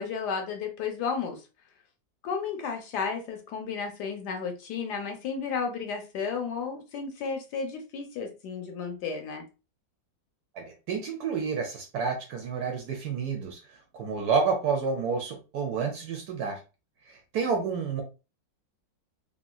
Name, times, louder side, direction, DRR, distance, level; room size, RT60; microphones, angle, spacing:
voice 1, 0.0-1.4 2.2-9.5, left 5 dB, 70° left, 1.1 m, -33 dB
voice 2, 10.5-16.6 17.1-18.0, right 5 dB, 70° right, 1.0 m, -30 dB
2.9 x 2.7 x 2.3 m
omnidirectional pair, 2.0 m